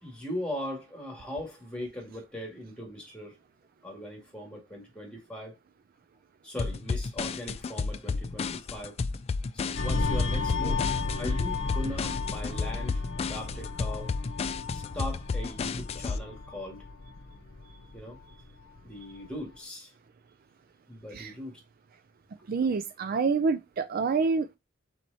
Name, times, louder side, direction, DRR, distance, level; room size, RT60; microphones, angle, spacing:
voice 1, 0.0-3.4 3.8-5.5 6.4-9.0 9.5-10.9 11.2-14.2 14.7-16.8 17.9-18.2 18.8-19.9 20.9-21.6, left 1 dB, 5° left, 1.8 m, -39 dB
sound 1, 6.6-16.2, left 4 dB, 30° left, 0.3 m, -32 dB
sound 2, 9.8-18.8 19.1-19.4, left 3 dB, 75° left, 0.7 m, -33 dB
voice 2, 22.5-24.5, right 4 dB, 50° right, 0.4 m, -27 dB
4.5 x 4.2 x 2.7 m
head